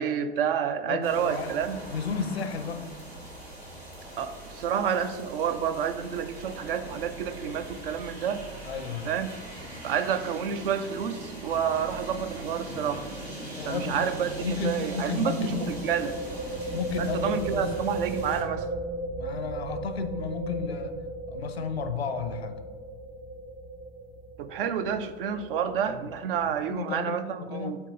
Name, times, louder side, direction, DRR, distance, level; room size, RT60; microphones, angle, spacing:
voice 1, 0.0-1.8 4.2-8.4 9.0-9.3 9.8-13.1 13.6-16.2 17.0-18.7 24.4-27.8, right 8 dB, 60° right, 11 dB, 0.6 m, -29 dB
voice 2, 0.9-1.5 1.9-2.9 8.6-9.2 13.6-14.1 14.4-15.7 16.7-17.7 19.2-21.0 21.3-22.6 25.9-26.0 26.5-27.8, left 6 dB, 80° left, 9 dB, 0.7 m, -33 dB
sound 1, 1.0-18.4, right 1 dB, 90° right, 2.0 m, -41 dB
sound 2, 12.3-12.6 12.8-12.9 15.4-26.8, right 2 dB, 15° right, 0.4 m, -36 dB
8.2 x 2.9 x 5.3 m, 1.4 s
figure-of-eight pair, 85°, 31 cm